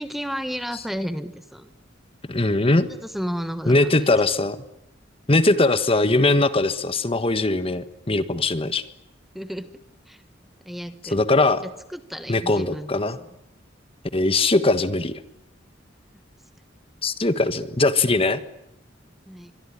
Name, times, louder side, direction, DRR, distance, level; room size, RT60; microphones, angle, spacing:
voice 1, 0.0-1.7 2.8-4.1 9.3-9.7 10.1-10.2 10.6-11.2 11.6-12.9 13.2-13.3 19.3-19.5, equal, ahead, 10 dB, 1.3 m, -32 dB
voice 2, 2.3-2.9 3.7-4.6 5.3-8.8 11.1-11.6 12.3-13.2 14.1-15.1 17.0-18.4, left 2 dB, 30° left, 12 dB, 1.5 m, -20 dB
25.5 x 23.0 x 9.9 m, 0.81 s
head